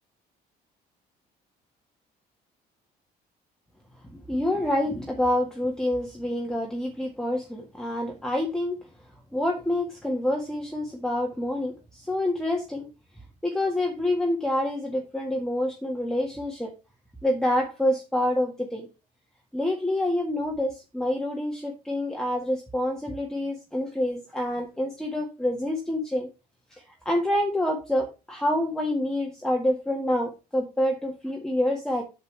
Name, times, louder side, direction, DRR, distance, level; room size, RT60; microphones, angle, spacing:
voice 1, 4.1-8.8 9.3-12.9 13.4-16.7 17.2-18.9 19.5-26.3 26.7-32.0, left 1 dB, 5° left, 0 dB, 1.7 m, -27 dB
8.1 x 7.1 x 3.3 m, 0.29 s
cardioid pair, 110°, 17 cm